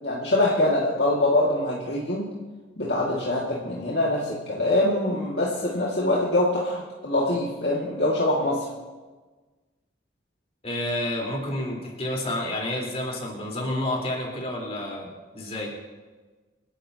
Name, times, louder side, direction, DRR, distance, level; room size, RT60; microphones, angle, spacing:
voice 1, 0.0-2.3 2.8-8.7, left 1 dB, 65° left, -5 dB, 2.2 m, -24 dB
voice 2, 10.6-15.8, left 1 dB, 35° left, -3 dB, 4.1 m, -30 dB
29.0 x 11.5 x 2.9 m, 1.3 s
head